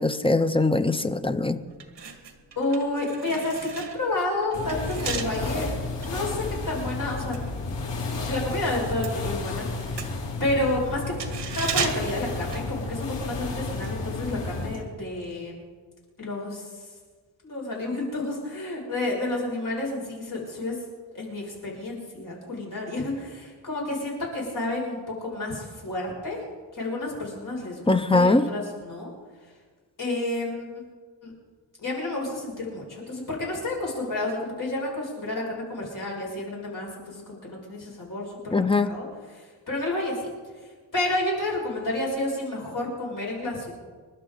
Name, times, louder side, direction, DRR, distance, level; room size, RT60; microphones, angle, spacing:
voice 1, 0.0-1.6 27.9-28.4 38.5-38.9, left 3 dB, 10° left, 10 dB, 0.6 m, -21 dB
sound 1, 1.1-1.3 1.7-8.3 8.6-13.3 13.5-13.7, right 6 dB, 70° right, 1.7 m, -36 dB
voice 2, 2.6-7.4 8.2-9.7 9.9-11.1 11.5-15.6 16.2-16.8 17.4-20.8 21.1-26.4 26.7-29.1 30.0-30.7 31.2-31.3 31.8-40.3 40.9-43.7, left 2 dB, 45° left, -3 dB, 6.4 m, -30 dB
sound 2, 4.5-14.8, left 3 dB, 70° left, 3.2 m, -32 dB
27.5 x 12.0 x 3.9 m, 1.5 s
wide cardioid pair, 140°, 44 cm